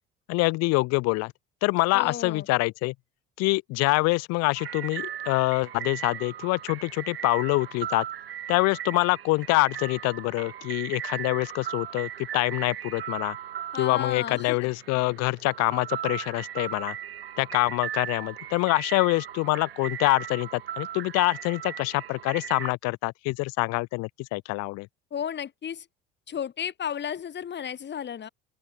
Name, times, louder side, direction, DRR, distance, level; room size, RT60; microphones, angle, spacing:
voice 1, 0.3-1.3 1.6-2.9 3.4-8.1 8.5-13.4 13.8-17.0 17.4-24.9, left 23 dB, 60° left, 7.0 m, -25 dB
voice 2, 1.9-2.5 13.7-14.6 25.1-25.9 26.3-28.3, left 8 dB, 35° left, 6.3 m, -33 dB
sound 1, 4.5-22.7, right 10 dB, 75° right, 3.2 m, -37 dB
open air
figure-of-eight pair, 60°, 30 cm